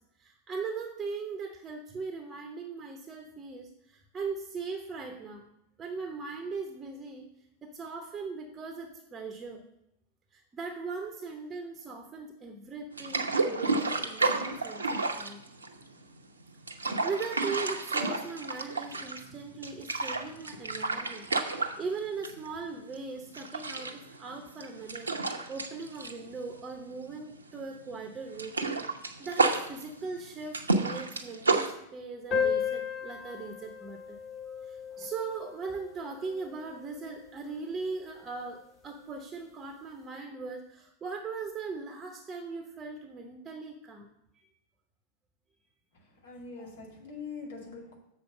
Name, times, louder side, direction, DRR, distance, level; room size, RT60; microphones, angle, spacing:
voice 1, 0.2-5.5 5.8-7.2 7.6-9.6 10.3-15.4 16.8-21.3 21.5-25.1 25.5-28.6 29.2-34.2 34.5-44.4, right 4 dB, 20° right, 4 dB, 0.8 m, -39 dB
sound 1, 13.0-16.0 16.5-19.3 19.6-22.5 22.8-23.0 23.3-27.1 27.4-27.6 27.9-31.7, right 3 dB, 75° right, 0.7 m, -31 dB
sound 2, 32.3-37.3, left 7 dB, 35° left, 2.3 m, -35 dB
voice 2, 46.2-48.0, left 4 dB, 60° left, -2 dB, 2.3 m, -43 dB
6.9 x 4.3 x 6.7 m, 0.80 s
figure-of-eight pair, 90°, 0 cm